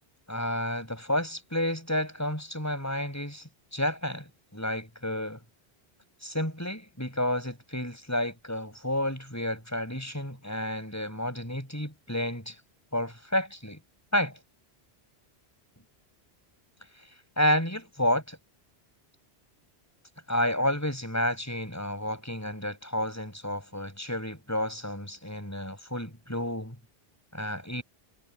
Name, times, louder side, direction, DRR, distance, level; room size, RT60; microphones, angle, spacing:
voice 1, 0.3-5.4 6.2-12.5 12.9-13.8 14.1-14.4 17.4-18.4 20.3-26.8 27.3-27.8, left 1 dB, 15° left, 8.0 m, -30 dB
omnidirectional pair, 1.1 m